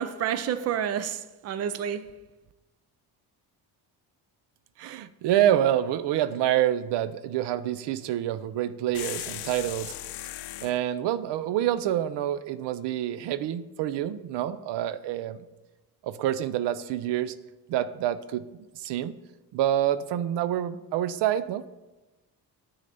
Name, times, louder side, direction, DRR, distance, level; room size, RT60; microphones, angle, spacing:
voice 1, 0.0-2.2, right 9 dB, 40° right, 0.5 m, -29 dB
voice 2, 4.8-9.9 10.6-15.4 16.0-17.3 17.7-18.4 18.7-19.1 19.5-21.7, right 11 dB, 80° right, 0.6 m, -27 dB
sound 1, 8.9-10.8, left 15 dB, 75° left, 0.5 m, -37 dB
9.8 x 4.1 x 6.7 m
cardioid pair, 140°, 41 cm